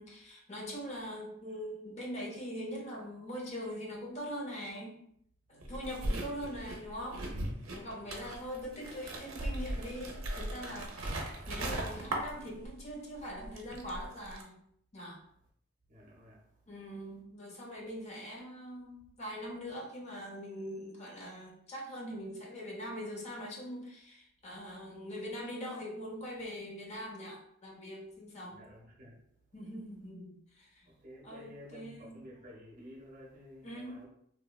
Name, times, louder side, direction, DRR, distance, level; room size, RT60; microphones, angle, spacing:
voice 1, 0.0-5.0 5.5-7.3 7.7-11.1 11.5-14.6 14.9-15.2 16.7-28.6 29.5-30.9 31.2-32.2 33.6-34.0, equal, 35° left, 0.6 m, -42 dB
sound 1, 5.6-12.9 13.2-14.4, right 1 dB, 80° right, 0.5 m, -38 dB
voice 2, 7.7-8.3 15.9-16.8 24.8-24.9 28.5-29.6 30.9-34.1, equal, 40° right, 0.7 m, -53 dB
3.0 x 2.1 x 2.2 m
head